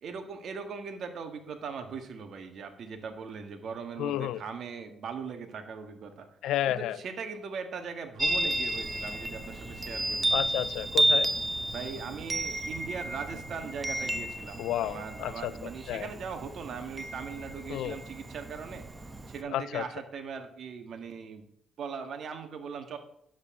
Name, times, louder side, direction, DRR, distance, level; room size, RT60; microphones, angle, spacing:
voice 1, 0.0-6.3 6.7-10.3 11.7-18.8 19.3-21.5 21.8-23.0, right 5 dB, 60° right, 1.5 m, -40 dB
voice 2, 4.0-4.4 6.4-7.0 10.3-11.3 14.6-16.1 17.7-18.0 19.5-19.8, left 12 dB, 85° left, 0.4 m, -31 dB
Chime, 8.2-19.4, right 1 dB, 20° right, 0.9 m, -32 dB
sound 1, 8.7-14.2, right 2 dB, 45° right, 2.2 m, -48 dB
9.5 x 7.7 x 3.7 m
cardioid pair, 90°, 0 cm